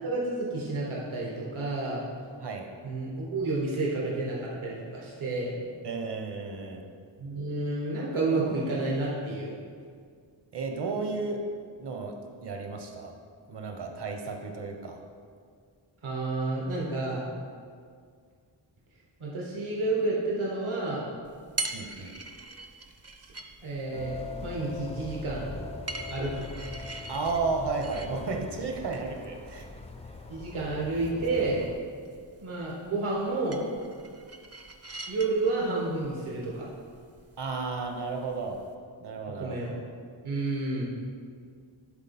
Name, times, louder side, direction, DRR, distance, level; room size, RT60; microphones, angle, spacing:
voice 1, 0.0-2.0 2.8-5.6 7.2-9.6 16.0-17.3 19.2-21.0 23.6-24.2 24.4-25.5 26.1-26.4 30.3-31.6 32.4-33.6 35.1-36.7 39.4-39.7 40.2-40.8, right 2 dB, 80° right, -4 dB, 1.5 m, -30 dB
voice 2, 5.8-6.8 10.5-11.4 11.8-13.1 13.5-15.0 21.7-22.2 27.1-29.7 30.5-30.6 31.4-31.5 37.4-38.6 39.0-39.6, right 4 dB, 55° right, 3 dB, 1.0 m, -33 dB
sound 1, 21.2-38.7, right 2 dB, 30° right, 0.5 m, -44 dB
sound 2, 23.9-31.8, left 3 dB, 15° left, 0.3 m, -41 dB
10.5 x 4.0 x 4.3 m, 2.1 s
wide cardioid pair, 90°, 48 cm